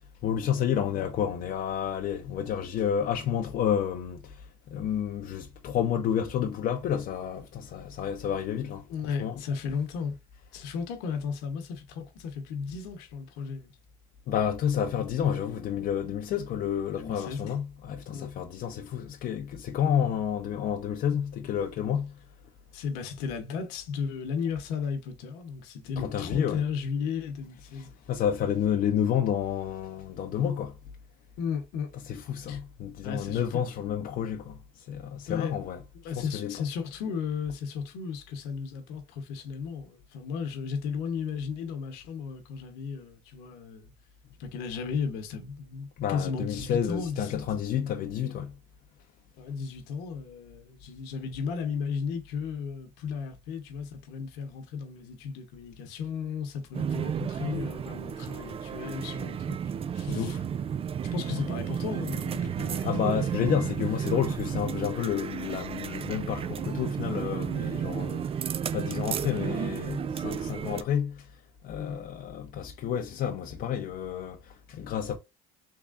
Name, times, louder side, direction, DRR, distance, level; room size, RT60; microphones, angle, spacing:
voice 1, 0.2-9.4 14.3-22.2 26.0-26.7 27.7-30.8 32.1-36.6 46.0-48.5 60.1-60.5 62.6-68.4 68.7-75.2, left 9 dB, 55° left, 0.6 m, -30 dB
voice 2, 8.9-10.2 10.5-13.7 17.0-17.5 18.1-18.3 22.7-27.9 31.4-31.9 32.5-32.6 33.0-33.7 35.3-35.5 36.0-43.9 44.4-47.4 49.4-60.4 61.0-63.3 67.8-68.0 71.8-72.0, left 6 dB, 75° left, 1.0 m, -35 dB
sound 1, 56.7-70.8, right 8 dB, 35° right, 0.4 m, -32 dB
3.6 x 3.1 x 2.5 m
supercardioid pair, 75°, 17 cm